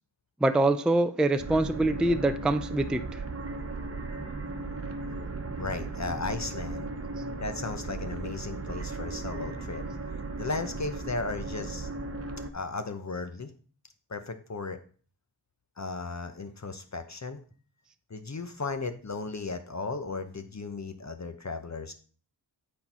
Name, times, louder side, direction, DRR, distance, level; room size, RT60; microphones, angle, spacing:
voice 1, 0.4-3.2, right 2 dB, ahead, 9 dB, 0.4 m, -25 dB
sound 1, 1.4-12.5, right 3 dB, 30° right, 1.0 m, -36 dB
voice 2, 5.6-6.9 7.4-9.8 10.4-11.9 12.5-13.5 14.1-14.8 15.8-17.4 18.1-21.9, left 3 dB, 40° left, 7 dB, 0.8 m, -35 dB
8.5 x 4.4 x 5.5 m, 0.41 s
wide cardioid pair, 105°, 45 cm